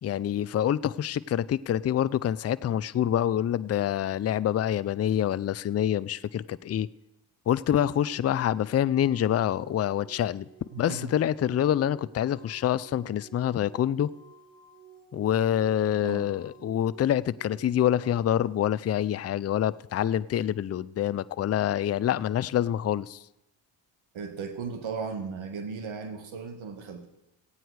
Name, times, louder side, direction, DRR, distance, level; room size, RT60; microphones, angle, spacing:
voice 1, 0.0-6.9 7.5-10.5 10.8-14.1 15.1-23.2, left 10 dB, 35° left, 0.4 m, -26 dB
sound 1, 8.0-18.7, right 7 dB, 35° right, 5.7 m, -53 dB
voice 2, 10.7-11.2 15.9-16.3 24.1-27.1, right 5 dB, 70° right, 1.5 m, -36 dB
16.0 x 9.0 x 4.7 m
cardioid pair, 65°, 49 cm